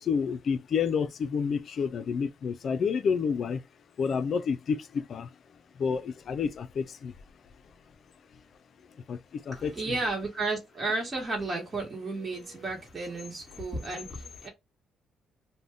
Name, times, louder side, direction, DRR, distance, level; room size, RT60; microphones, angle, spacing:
voice 1, 0.0-3.6 4.0-5.3 5.8-7.1 9.1-10.0, left 6 dB, 55° left, 0.4 m, -29 dB
voice 2, 9.5-14.5, right 3 dB, 30° right, 1.3 m, -33 dB
2.6 x 2.2 x 3.4 m
cardioid pair, 90°, 0 cm